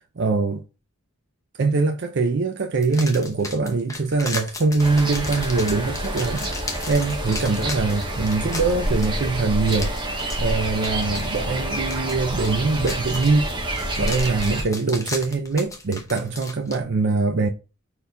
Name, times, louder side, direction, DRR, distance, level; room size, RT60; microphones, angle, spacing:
voice 1, 0.2-0.6 1.6-13.5 14.0-17.5, right 3 dB, 55° right, 0.5 m, -23 dB
sound 1, 2.8-16.8, left 3 dB, 15° left, 0.8 m, -36 dB
sound 2, 4.8-14.6, right 1 dB, 20° right, 1.1 m, -28 dB
5.2 x 4.3 x 2.3 m
head